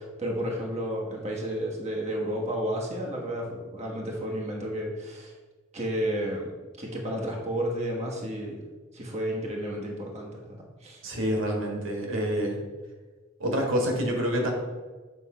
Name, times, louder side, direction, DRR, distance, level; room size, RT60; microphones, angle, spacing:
voice 1, 0.0-5.3 5.7-6.5 6.8-8.6 8.9-11.0, equal, 35° right, -2 dB, 1.3 m, -32 dB
voice 2, 11.0-12.6 13.4-14.5, equal, 85° right, 1 dB, 1.6 m, -27 dB
7.8 x 3.6 x 5.5 m, 1.3 s
head